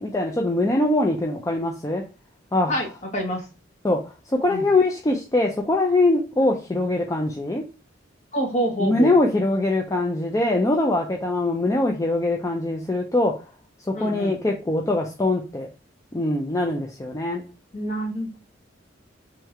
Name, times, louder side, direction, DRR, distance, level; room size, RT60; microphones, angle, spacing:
voice 1, 0.0-2.0 2.5-2.8 3.8-7.7 8.8-13.4 13.9-15.7 16.1-17.5, left 2 dB, 15° left, 0.4 m, -22 dB
voice 2, 3.1-3.4 4.5-4.7 8.3-9.1 13.9-14.3 17.7-18.4, right 1 dB, 35° left, 1.2 m, -26 dB
3.2 x 3.1 x 3.5 m
head